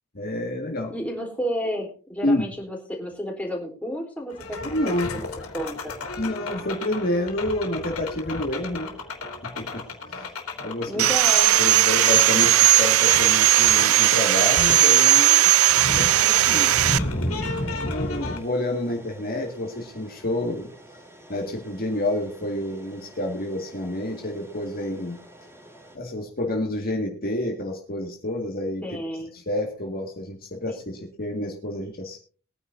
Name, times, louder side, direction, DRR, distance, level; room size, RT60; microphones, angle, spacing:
voice 1, 0.1-0.9 2.2-2.4 4.6-5.3 6.2-9.0 9.4-10.3 10.6-11.0 11.6-16.9 17.2-20.7 21.3-25.2 25.9-28.8 29.3-32.2, left 1 dB, 45° left, 1 dB, 1.9 m, -29 dB
voice 2, 0.9-4.9 5.5-5.9 10.8-11.5 28.8-29.3, equal, 5° left, -1 dB, 3.6 m, -31 dB
sound 1, 4.3-18.4, left 2 dB, 75° left, 3.3 m, -33 dB
Sawing, 11.0-17.0, right 13 dB, 70° right, 0.5 m, -17 dB
sound 2, 13.9-26.0, right 1 dB, 10° right, 2.5 m, -49 dB
22.0 x 9.9 x 2.7 m, 0.39 s
head